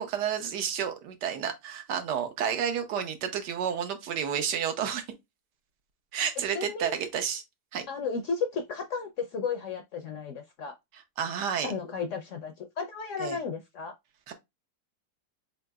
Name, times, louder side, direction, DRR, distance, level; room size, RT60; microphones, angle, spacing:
voice 1, 0.0-5.0 6.1-7.4 7.7-7.9 11.2-11.7 13.2-13.4 14.3-14.4, right 8 dB, 85° right, 1.4 m, -30 dB
voice 2, 6.5-7.0 7.9-10.7 11.6-13.9, left 5 dB, 70° left, 0.7 m, -33 dB
4.0 x 3.7 x 2.2 m
omnidirectional pair, 1.8 m